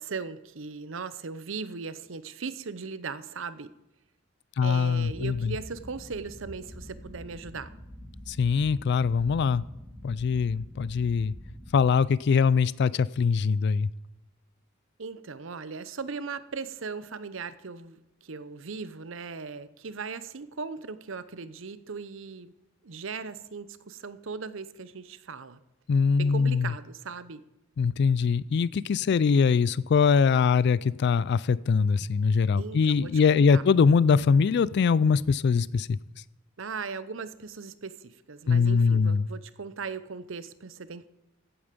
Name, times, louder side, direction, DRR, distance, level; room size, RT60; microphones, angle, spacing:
voice 1, 0.0-3.7 4.6-7.7 15.0-22.5 22.8-25.6 26.2-27.4 32.6-33.6 36.6-41.1, right 5 dB, 70° right, 14 dB, 0.7 m, -38 dB
voice 2, 4.6-5.3 8.3-9.6 10.0-11.3 11.7-13.9 25.9-26.7 27.8-36.0 38.5-39.2, left 5 dB, 55° left, 19 dB, 0.3 m, -22 dB
sound 1, 5.0-12.0, equal, 5° left, 1.3 m, -45 dB
15.0 x 8.7 x 5.2 m, 0.96 s
head